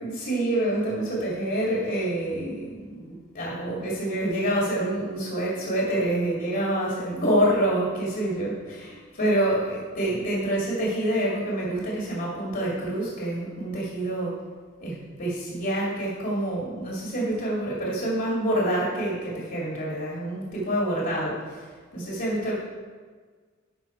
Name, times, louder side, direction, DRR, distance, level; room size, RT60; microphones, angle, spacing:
voice 1, 0.0-14.3 14.8-21.7 21.9-22.5, right 1 dB, 55° left, -5 dB, 2.5 m, -27 dB
11.5 x 5.7 x 4.5 m, 1.5 s
head